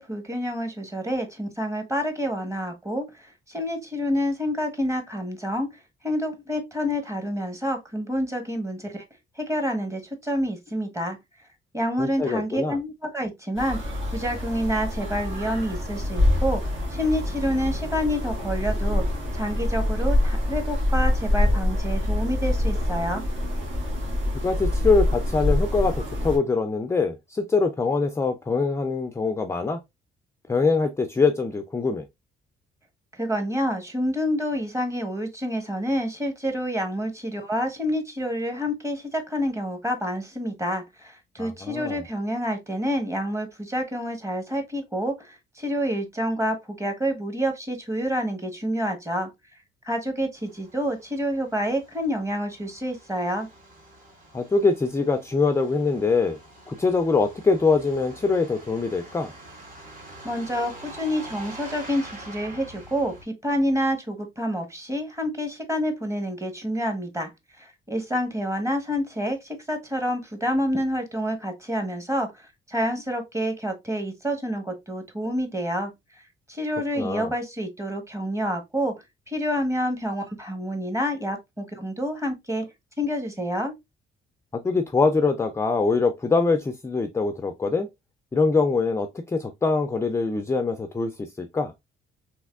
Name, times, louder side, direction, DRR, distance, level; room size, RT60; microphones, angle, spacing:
voice 1, 0.0-5.7 6.0-9.0 9.4-11.2 11.7-13.8 14.1-16.6 16.9-19.0 19.3-23.2 33.1-49.3 49.8-53.5 60.2-67.3 67.6-75.9 76.5-78.9 79.3-82.7 83.0-83.7, equal, 15° right, 1.0 m, -28 dB
voice 2, 12.0-12.8 24.4-29.8 30.5-32.1 41.4-42.0 54.3-56.4 56.7-59.3 77.0-77.3 84.6-87.9 88.3-91.7, left 4 dB, 15° left, 0.3 m, -23 dB
sound 1, 13.6-26.4, left 1 dB, 70° right, 1.4 m, -25 dB
Truck, 50.3-63.2, right 1 dB, 45° right, 1.5 m, -45 dB
3.3 x 2.9 x 2.3 m
cardioid pair, 90°, 20 cm